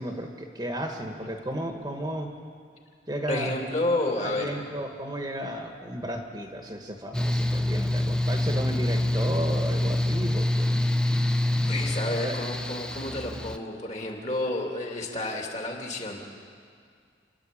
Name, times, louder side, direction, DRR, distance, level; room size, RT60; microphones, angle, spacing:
voice 1, 0.0-2.3 3.1-3.5 4.2-10.8 12.2-12.4, right 1 dB, 20° right, 3 dB, 1.3 m, -34 dB
voice 2, 3.3-4.6 11.7-16.2, left 1 dB, 40° left, 1 dB, 2.7 m, -30 dB
Mechanical fan, 7.1-13.6, left 1 dB, 5° left, 0.6 m, -26 dB
29.0 x 11.5 x 8.6 m, 2.1 s
head